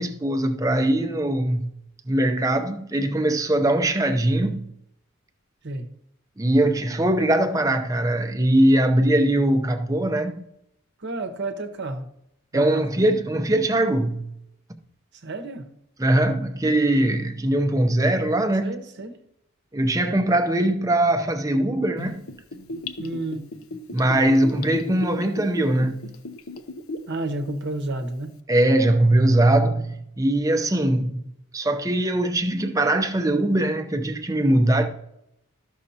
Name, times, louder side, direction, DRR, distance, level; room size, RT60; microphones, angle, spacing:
voice 1, 0.0-1.7 2.1-4.7 6.4-10.5 12.5-14.3 16.0-18.8 19.7-22.3 23.9-26.1 28.5-31.2 31.5-34.9, right 1 dB, 15° right, 0.6 m, -21 dB
voice 2, 11.0-12.1 12.5-12.9 15.2-15.7 18.6-19.2 23.0-23.5 27.1-28.4, right 2 dB, 55° right, 0.9 m, -31 dB
Gurgling / Bathtub (filling or washing), 22.0-27.1 27.5-27.6, left 1 dB, 75° left, 0.7 m, -34 dB
12.5 x 6.3 x 2.8 m
head